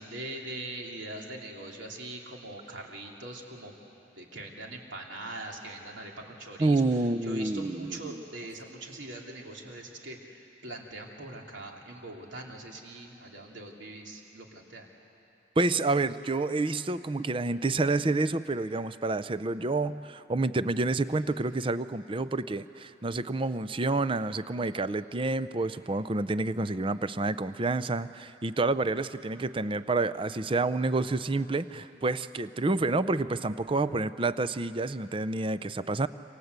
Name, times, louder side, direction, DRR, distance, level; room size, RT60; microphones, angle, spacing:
voice 1, 0.0-3.7 4.2-14.9, right 1 dB, 65° right, 0 dB, 3.1 m, -42 dB
voice 2, 6.6-8.2 15.6-36.1, right 3 dB, 25° right, 14 dB, 0.5 m, -29 dB
27.5 x 27.0 x 8.1 m, 2.9 s
head